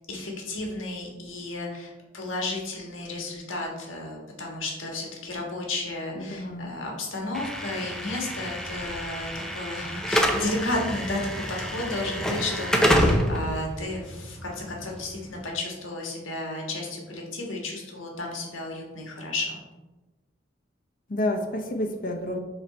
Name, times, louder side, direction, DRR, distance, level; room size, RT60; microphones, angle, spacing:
voice 1, 0.0-9.3 9.5-19.6, left 2 dB, 85° left, -1 dB, 1.5 m, -33 dB
voice 2, 6.2-6.7 21.1-22.4, left 1 dB, 45° left, 4 dB, 0.7 m, -29 dB
Slam / Alarm, 7.3-15.4, equal, 5° left, 0.5 m, -27 dB
6.0 x 3.9 x 4.2 m, 1.1 s
head